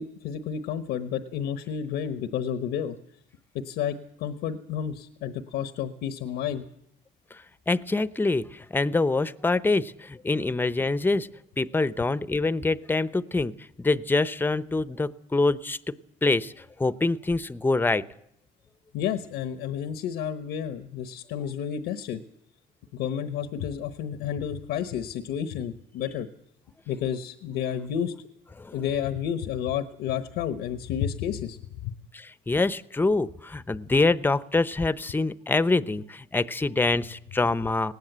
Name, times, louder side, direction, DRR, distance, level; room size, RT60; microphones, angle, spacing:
voice 1, 0.0-3.0 3.6-6.6 18.9-22.2 22.9-26.3 26.9-28.1 28.7-32.0, left 9 dB, 85° left, 10 dB, 1.0 m, -31 dB
voice 2, 7.3-11.3 11.6-15.9 16.2-18.0 28.6-28.8 32.1-37.9, left 3 dB, 10° left, 16 dB, 0.7 m, -25 dB
19.0 x 18.0 x 8.0 m, 0.76 s
cardioid pair, 110°, 17 cm